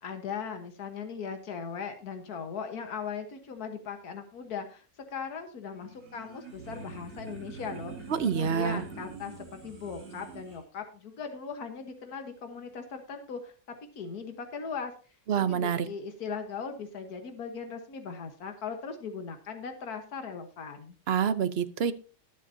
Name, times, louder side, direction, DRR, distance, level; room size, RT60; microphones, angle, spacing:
voice 1, 0.0-4.9 5.1-13.5 14.0-14.9 15.4-21.0, left 6 dB, 85° left, 6 dB, 1.8 m, -39 dB
sound 1, 5.7-10.6, right 4 dB, 70° right, 4.8 m, -44 dB
voice 2, 8.1-8.8 15.3-15.9 21.1-21.9, right 7 dB, 50° right, 12 dB, 0.9 m, -27 dB
20.5 x 7.3 x 2.7 m, 0.36 s
omnidirectional pair, 1.6 m